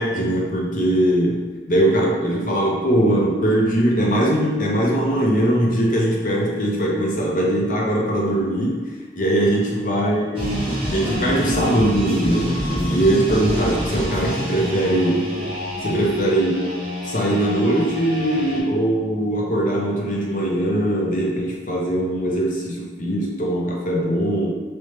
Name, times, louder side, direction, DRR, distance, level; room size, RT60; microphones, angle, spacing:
voice 1, 0.0-1.4 1.7-8.8 9.1-15.3 15.8-16.7 17.0-24.5, right 1 dB, 45° left, -3 dB, 0.7 m, -21 dB
sound 1, 10.4-18.6, equal, 30° right, 0.8 m, -27 dB
3.1 x 3.1 x 3.1 m, 1.4 s
head